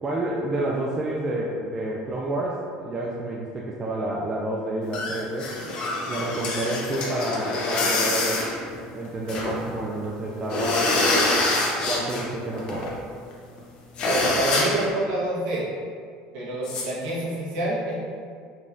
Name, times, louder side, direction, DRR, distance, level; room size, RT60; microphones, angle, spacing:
voice 1, 0.0-5.5 6.1-8.4 8.9-11.2 11.9-12.9, right 1 dB, 20° right, -3 dB, 0.3 m, -29 dB
sound 1, 4.9-9.7 10.0-10.1 10.4-12.3 12.5-12.9 13.3-13.4 13.6-13.7 14.0-14.9 16.6-16.8, left 2 dB, 35° left, 0.8 m, -25 dB
voice 2, 14.0-15.7 16.3-17.9, right 1 dB, 60° right, -6 dB, 1.3 m, -27 dB
5.3 x 3.4 x 2.6 m, 2.2 s
cardioid pair, 170°, 3 cm